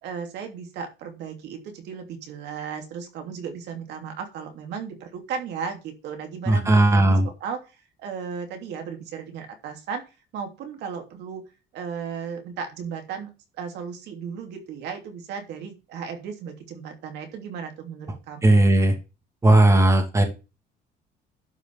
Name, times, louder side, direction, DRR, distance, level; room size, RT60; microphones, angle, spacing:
voice 1, 0.0-7.7 8.0-10.0 10.3-11.4 11.7-13.3 13.6-18.7, right 6 dB, 75° right, 4 dB, 2.9 m, -35 dB
voice 2, 6.5-7.3 18.4-18.9 19.4-20.2, right 1 dB, 15° right, 5 dB, 2.5 m, -17 dB
11.5 x 5.5 x 5.4 m, 0.29 s
cardioid pair, 145°, 18 cm